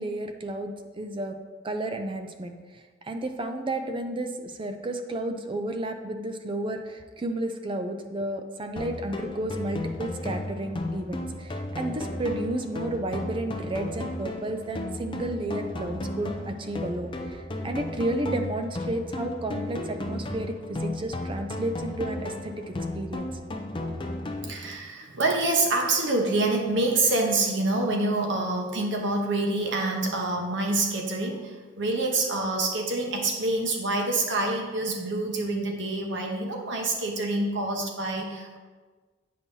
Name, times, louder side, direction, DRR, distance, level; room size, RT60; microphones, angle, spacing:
voice 1, 0.0-1.4 1.6-2.5 3.1-23.3, right 1 dB, 25° right, 6 dB, 0.4 m, -32 dB
sound 1, 8.8-24.8, left 1 dB, 25° left, 0.6 m, -34 dB
voice 2, 24.4-38.6, right 2 dB, 70° right, 1 dB, 1.0 m, -26 dB
8.5 x 5.4 x 2.7 m, 1.4 s
head